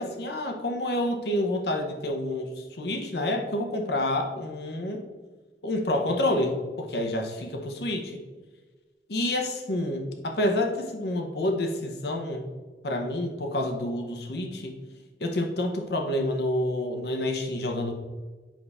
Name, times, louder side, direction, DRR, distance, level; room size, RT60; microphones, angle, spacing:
voice 1, 0.0-5.1 5.6-8.2 9.1-12.5 12.8-14.8 15.2-17.9, left 1 dB, 70° left, 4 dB, 0.9 m, -28 dB
7.5 x 5.5 x 3.5 m, 1.3 s
head